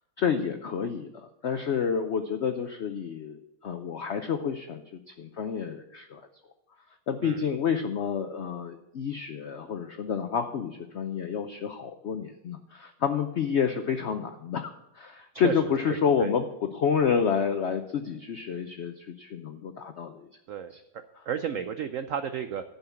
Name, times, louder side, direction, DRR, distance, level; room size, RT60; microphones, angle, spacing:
voice 1, 0.2-6.2 7.1-20.3 20.7-20.8 21.2-21.3, left 7 dB, 80° left, 7 dB, 0.6 m, -29 dB
voice 2, 15.9-16.3 20.5-20.7 21.3-22.6, right 8 dB, 80° right, 10 dB, 0.7 m, -32 dB
11.5 x 5.7 x 6.9 m, 0.87 s
omnidirectional pair, 2.0 m